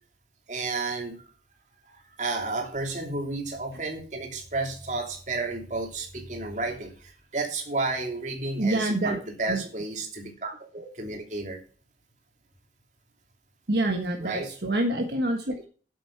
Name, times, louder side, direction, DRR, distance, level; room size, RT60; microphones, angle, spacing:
voice 1, 0.5-1.2 1.8-11.6 14.2-14.5, right 3 dB, 40° right, 2 dB, 2.8 m, -32 dB
voice 2, 8.6-9.2 9.5-9.6 13.7-15.7, right 1 dB, 65° right, 3 dB, 1.4 m, -26 dB
8.4 x 8.0 x 5.8 m, 0.40 s
head